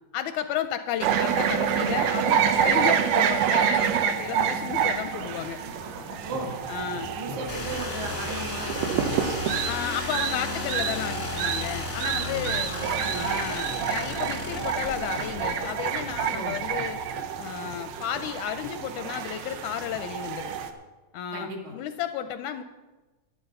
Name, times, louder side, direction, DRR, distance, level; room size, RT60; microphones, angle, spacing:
voice 1, 0.1-5.6 6.7-7.1 9.6-12.7 13.1-17.0 17.4-20.5 21.1-22.6, left 9 dB, 80° left, 9 dB, 1.8 m, -33 dB
sound 1, 1.0-20.7, right 8 dB, 80° right, 2.4 m, -28 dB
sound 2, 2.5-19.7 20.0-20.1, right 1 dB, 45° right, 1.9 m, -43 dB
voice 2, 6.2-6.6 7.1-9.3 12.1-13.3 16.3-16.6 21.3-21.8, right 2 dB, 65° right, 0 dB, 3.2 m, -36 dB
sound 3, 7.5-16.2, left 3 dB, 45° left, 0.9 m, -35 dB
12.0 x 11.0 x 5.5 m, 1.2 s
omnidirectional pair, 3.7 m